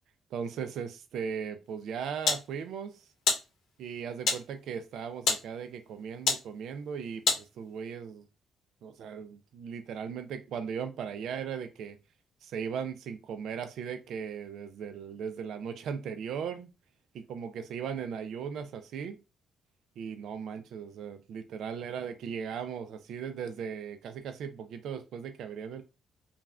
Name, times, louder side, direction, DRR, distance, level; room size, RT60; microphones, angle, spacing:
voice 1, 0.3-3.1 3.8-8.3 8.8-12.0 12.4-16.7 17.1-19.2 20.0-25.8, right 7 dB, 75° right, 0.3 m, -38 dB
sound 1, 1.6-7.9, left 5 dB, 80° left, 0.7 m, -34 dB
2.4 x 2.3 x 3.2 m
cardioid pair, 115°, 0 cm